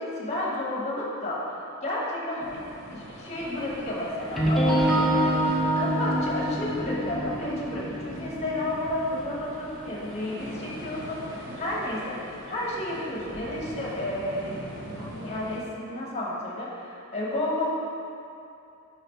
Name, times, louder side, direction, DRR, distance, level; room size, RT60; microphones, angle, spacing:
voice 1, 0.0-2.6 2.9-12.2 12.4-17.7, left 1 dB, 30° left, -4 dB, 1.1 m, -32 dB
sound 1, 2.4-15.6, right 1 dB, 60° right, 1.0 m, -41 dB
sound 2, 4.2-10.1, right 1 dB, ahead, 0.7 m, -26 dB
4.9 x 4.9 x 4.5 m, 2.7 s
head